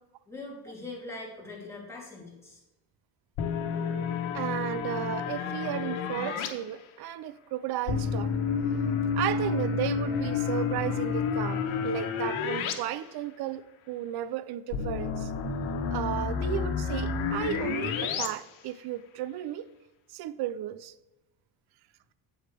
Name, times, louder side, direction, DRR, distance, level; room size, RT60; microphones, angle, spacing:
voice 1, 0.3-2.6, left 2 dB, 5° left, 3.1 m, -42 dB
sound 1, 3.4-6.5 7.9-12.7 13.1-13.2 14.7-18.3, left 6 dB, 80° left, 1.3 m, -30 dB
voice 2, 4.3-8.3 8.7-8.8 9.1-15.3 15.9-19.7 20.1-20.9, right 12 dB, 55° right, 0.5 m, -34 dB
8.8 x 8.2 x 3.4 m
cardioid pair, 155°, 47 cm